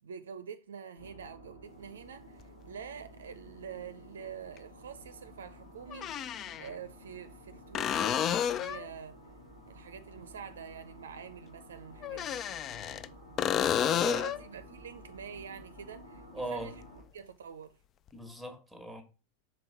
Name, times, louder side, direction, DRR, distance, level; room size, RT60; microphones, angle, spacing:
voice 1, 0.0-6.3 6.6-9.2 9.7-12.4 14.0-16.8 17.1-17.8, right 7 dB, 65° right, 0.6 m, -46 dB
sound 1, 1.0-17.0, equal, 85° left, 1.6 m, -52 dB
sound 2, 2.4-2.5 4.6-4.7 5.9-6.7 7.7-8.9 12.0-13.1 13.4-14.4 18.1-18.2, left 9 dB, 30° left, 0.3 m, -30 dB
voice 2, 13.5-14.3 16.3-16.7 18.1-19.0, right 2 dB, 5° left, 1.3 m, -40 dB
5.3 x 4.1 x 5.5 m
figure-of-eight pair, 90°, 0 cm